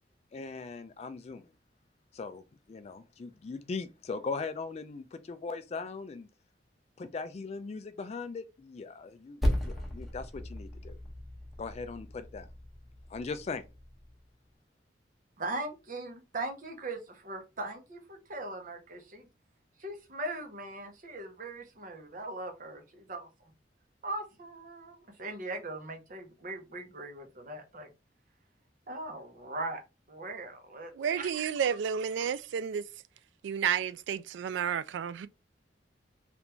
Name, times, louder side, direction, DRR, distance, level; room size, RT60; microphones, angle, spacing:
voice 1, 0.3-1.5 2.1-2.4 2.7-6.3 7.0-11.0 11.6-12.5 13.1-13.6, left 4 dB, 35° left, 0.3 m, -39 dB
Percussion, 9.4-14.3, equal, ahead, 0.9 m, -36 dB
voice 2, 15.4-19.3 19.8-23.5 24.0-27.9 28.9-29.8 30.1-31.3, right 2 dB, 45° right, 0.8 m, -40 dB
voice 3, 31.0-32.9 33.4-35.3, right 8 dB, 80° right, 0.3 m, -31 dB
3.3 x 2.5 x 3.0 m
head